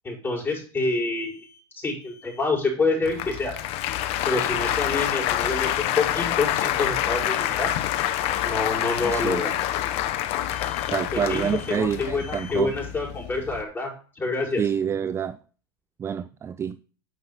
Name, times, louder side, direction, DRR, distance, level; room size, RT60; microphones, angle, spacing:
voice 1, 0.0-1.5 1.8-3.5 4.3-7.7 8.4-9.6 11.1-13.9 14.2-14.6, left 3 dB, 15° left, -3 dB, 5.3 m, -27 dB
Alarm, 1.2-1.6 2.0-2.5 3.7-4.2 4.6-5.0 5.4-5.9 7.1-7.6 8.0-8.4 8.8-9.2 10.5-11.0 11.3-11.8 12.2-12.7, left 2 dB, 75° left, 3.6 m, -49 dB
Applause, 3.0-13.6, left 12 dB, 50° left, 0.9 m, -27 dB
voice 2, 9.1-9.5 10.9-12.7 14.6-15.4 16.0-16.8, right 8 dB, 20° right, 14 dB, 0.4 m, -27 dB
9.8 x 6.1 x 5.7 m, 0.41 s
hypercardioid pair, 115°, 13 cm